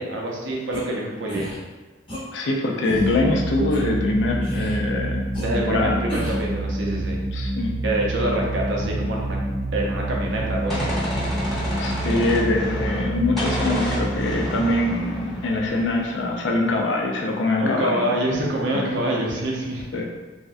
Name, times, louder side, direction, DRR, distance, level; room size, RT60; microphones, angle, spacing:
voice 1, 0.0-1.5 5.4-7.2 7.8-9.4 9.7-10.9 17.6-19.8, right 1 dB, 70° right, -2 dB, 0.6 m, -26 dB
sound 1, 0.7-0.8 1.3-1.6 2.1-2.2 2.8-3.1 3.7-3.8 4.4-4.8 5.3-5.4 6.1-6.5, left 1 dB, 25° left, 0.8 m, -32 dB
voice 2, 2.3-5.2 5.5-6.0 7.3-7.7 11.8-18.1 18.7-19.0 19.9-20.0, left 2 dB, 70° left, 0 dB, 0.5 m, -23 dB
sound 2, 2.9-16.2, right 1 dB, 25° right, 0.5 m, -28 dB
Gunshot gunfire, 10.3-13.1 13.4-16.1, equal, ahead, 1.0 m, -30 dB
3.3 x 2.1 x 2.5 m, 1.3 s
head